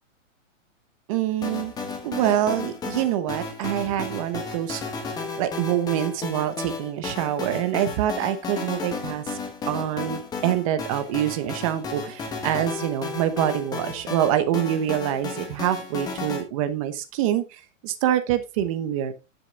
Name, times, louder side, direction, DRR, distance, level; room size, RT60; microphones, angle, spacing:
voice 1, 1.1-1.7 2.0-4.8 5.4-9.2 9.7-19.1, right 11 dB, 25° right, 11 dB, 1.0 m, -25 dB
sound 1, 1.4-16.4, left 4 dB, 10° left, 1.2 m, -33 dB
10.0 x 7.0 x 3.7 m, 0.28 s
hypercardioid pair, 165°, 39 cm